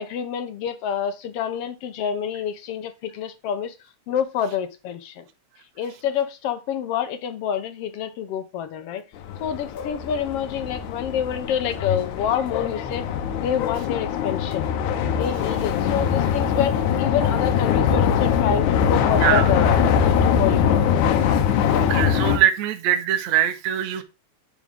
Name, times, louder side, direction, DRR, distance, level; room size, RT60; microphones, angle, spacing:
voice 1, 0.0-3.7 4.1-5.2 5.8-9.0 9.4-13.0 13.3-14.6 15.1-20.8, left 8 dB, 70° left, 1.5 m, -27 dB
sound 1, 9.2-22.4, left 8 dB, 85° left, 2.3 m, -22 dB
voice 2, 21.9-24.0, right 11 dB, 75° right, 2.0 m, -22 dB
10.5 x 4.8 x 3.7 m
omnidirectional pair, 3.4 m